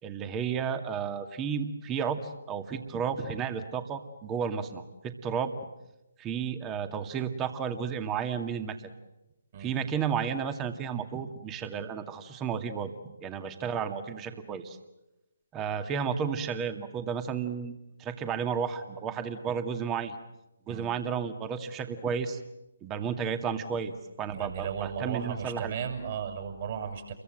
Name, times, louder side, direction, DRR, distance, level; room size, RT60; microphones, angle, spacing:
voice 1, 0.0-5.5 6.2-8.8 9.6-12.9 13.2-14.8 15.5-20.1 20.7-22.4 22.8-23.9 24.2-25.7, right 7 dB, 20° right, 8 dB, 2.2 m, -32 dB
voice 2, 24.3-27.1, right 7 dB, 45° right, 3 dB, 7.3 m, -35 dB
30.0 x 23.0 x 7.9 m, 0.96 s
figure-of-eight pair, 140°, 0 cm